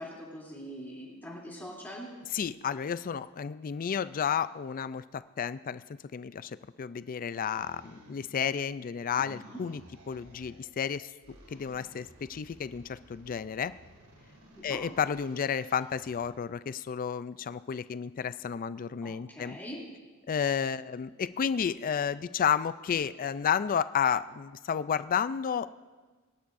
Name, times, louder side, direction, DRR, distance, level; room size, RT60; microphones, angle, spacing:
voice 1, 0.0-2.1 9.2-9.6 14.5-14.8 19.0-19.8, equal, 10° left, -5 dB, 2.9 m, -43 dB
voice 2, 2.3-5.8 6.1-9.8 10.1-11.1 11.5-13.7 14.6-19.6 20.3-25.8, left 7 dB, 40° left, 15 dB, 0.3 m, -31 dB
sound 1, 7.5-8.8 9.1-10.8 11.2-16.4, equal, 75° right, 2.7 m, -55 dB
22.5 x 12.5 x 2.6 m, 1.3 s
head